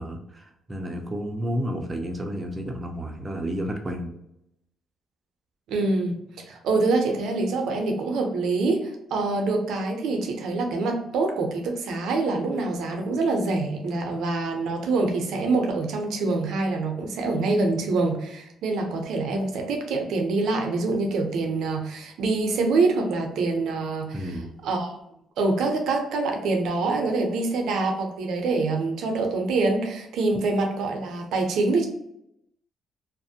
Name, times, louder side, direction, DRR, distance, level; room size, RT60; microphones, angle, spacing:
voice 1, 0.0-4.1 24.1-24.5, equal, 25° right, 3 dB, 0.5 m, -31 dB
voice 2, 5.7-6.2 6.5-24.3 24.6-24.9 25.4-31.9, right 3 dB, 80° right, 2 dB, 0.5 m, -25 dB
2.4 x 2.1 x 2.7 m, 0.79 s
cardioid pair, 90°, 0 cm